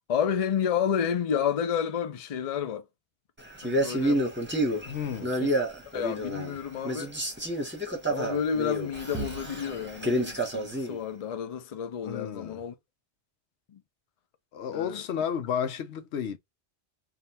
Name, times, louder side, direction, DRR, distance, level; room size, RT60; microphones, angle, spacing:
voice 1, 0.1-2.8 3.6-4.3 5.4-5.6 5.9-7.1 8.1-12.7 13.7-13.8 14.7-15.0, left 8 dB, 45° left, 0.5 m, -30 dB
Male speech man speaking, 3.6-6.6 6.8-11.0, right 1 dB, 10° right, 0.9 m, -29 dB
voice 2, 4.8-5.3 12.0-12.6 14.5-16.4, left 8 dB, 75° left, 0.9 m, -32 dB
3.6 x 2.4 x 4.1 m
omnidirectional pair, 1.2 m